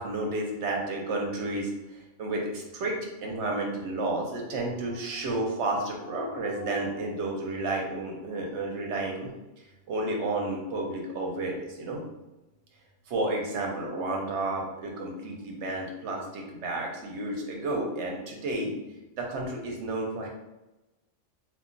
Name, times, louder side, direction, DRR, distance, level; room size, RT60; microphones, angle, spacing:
voice 1, 0.0-9.3 9.9-12.0 13.1-18.7 19.2-20.3, right 2 dB, 65° right, 0 dB, 0.9 m, -31 dB
2.3 x 2.1 x 3.7 m, 1.0 s
omnidirectional pair, 1.3 m